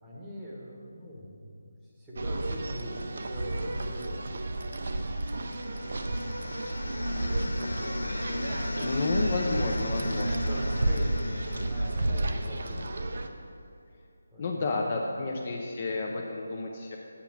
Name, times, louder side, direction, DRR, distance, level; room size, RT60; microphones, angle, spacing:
voice 1, 0.0-4.2 7.1-7.8 9.8-13.0 14.3-14.6, equal, 5° right, -6 dB, 1.0 m, -42 dB
sound 1, 2.2-13.3, right 2 dB, 50° right, 0.6 m, -32 dB
sound 2, 5.0-13.0, left 1 dB, 85° left, 0.4 m, -36 dB
voice 2, 8.8-10.3 14.4-17.0, left 3 dB, 25° left, 0 dB, 0.5 m, -31 dB
8.8 x 5.7 x 6.0 m, 2.5 s
figure-of-eight pair, 175°, 0 cm